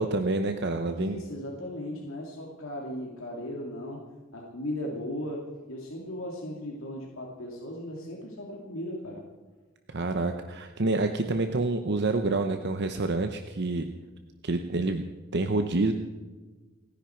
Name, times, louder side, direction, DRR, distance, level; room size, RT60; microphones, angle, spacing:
voice 1, 0.0-1.2 9.9-13.9 14.4-15.1 15.3-15.9, right 2 dB, 55° right, 7 dB, 0.9 m, -27 dB
voice 2, 0.8-9.2, left 1 dB, 80° left, -2 dB, 2.6 m, -37 dB
30.0 x 10.5 x 4.5 m, 1.3 s
head